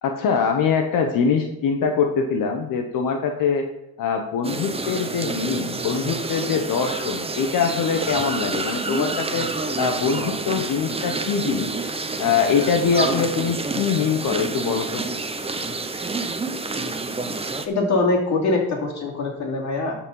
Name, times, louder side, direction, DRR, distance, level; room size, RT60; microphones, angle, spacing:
voice 1, 0.0-3.7 4.0-9.5 9.8-11.7 12.2-15.0, left 6 dB, 70° left, 4 dB, 1.1 m, -23 dB
sound 1, 4.4-17.7, right 3 dB, 15° right, 0.8 m, -28 dB
voice 2, 17.7-20.0, left 3 dB, 55° left, -1 dB, 2.7 m, -23 dB
12.0 x 4.2 x 5.5 m, 0.86 s
cardioid pair, 95°, 34 cm